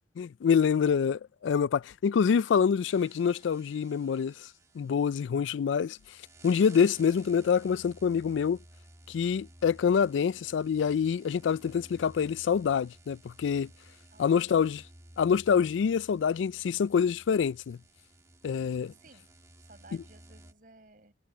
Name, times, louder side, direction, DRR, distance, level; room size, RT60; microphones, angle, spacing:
voice 1, 0.2-4.5 4.7-6.0 6.4-8.6 9.1-13.7 14.2-14.8 15.2-17.8 18.4-18.9, left 7 dB, 85° left, 0.3 m, -26 dB
sound 1, 2.8-20.5, right 1 dB, 15° right, 1.8 m, -55 dB
voice 2, 6.7-7.0 14.1-14.8 19.0-19.3 19.6-21.1, right 2 dB, 45° right, 7.1 m, -57 dB
head